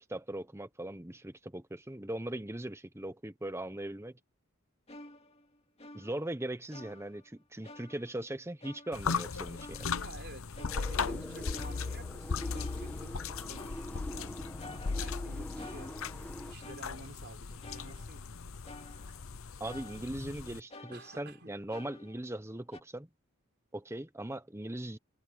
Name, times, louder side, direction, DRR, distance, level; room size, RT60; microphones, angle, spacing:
voice 1, 0.1-4.2 5.9-9.9 19.6-23.1 23.7-25.0, right 1 dB, 10° right, 1.0 m, -39 dB
sound 1, 4.9-6.4 6.7-7.4 7.6-8.3 8.6-9.2 9.6-11.2 11.5-12.3 12.5-13.2 13.5-14.2 14.6-16.3 16.6-17.3 17.6-18.3 18.6-19.4 19.7-20.4 20.7-22.4 22.7-22.8, left 2 dB, 30° left, 2.3 m, -52 dB
sound 2, 8.9-20.6, left 5 dB, 70° left, 0.8 m, -38 dB
voice 2, 9.9-13.2 13.5-14.4 14.8-16.0 16.5-18.3 20.9-21.5, right 2 dB, 50° right, 4.7 m, -51 dB
sound 3, 10.6-16.5, equal, 5° left, 1.4 m, -44 dB
head